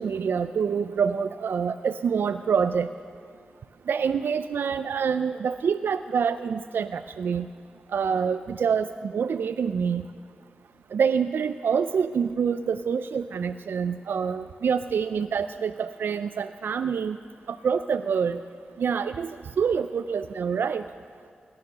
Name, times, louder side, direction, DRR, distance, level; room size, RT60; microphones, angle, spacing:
voice 1, 0.0-2.9 3.9-7.5 7.9-10.0 10.9-17.2 17.5-18.4 18.8-19.3 19.6-20.8, right 6 dB, 80° right, 11 dB, 0.4 m, -26 dB
17.5 x 11.5 x 6.6 m, 2.2 s
cardioid pair, 45°, 4 cm